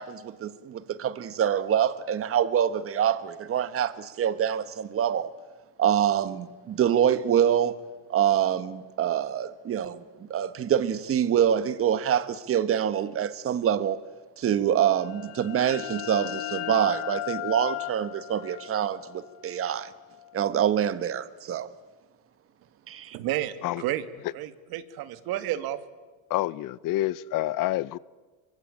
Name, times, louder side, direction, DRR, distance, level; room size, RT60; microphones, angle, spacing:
voice 1, 0.0-5.3 5.8-7.7 8.1-14.0 14.4-19.9 20.3-21.7 22.9-23.2, right 9 dB, 35° right, 13 dB, 1.5 m, -25 dB
sound 1, 14.9-20.4, left 18 dB, 70° left, 1.2 m, -36 dB
voice 2, 23.1-24.1 24.3-25.8, right 13 dB, 65° right, 10 dB, 2.3 m, -31 dB
voice 3, 26.3-28.0, left 15 dB, 55° left, 19 dB, 0.8 m, -28 dB
27.0 x 25.0 x 8.8 m, 1.3 s
cardioid pair, 150°, 40 cm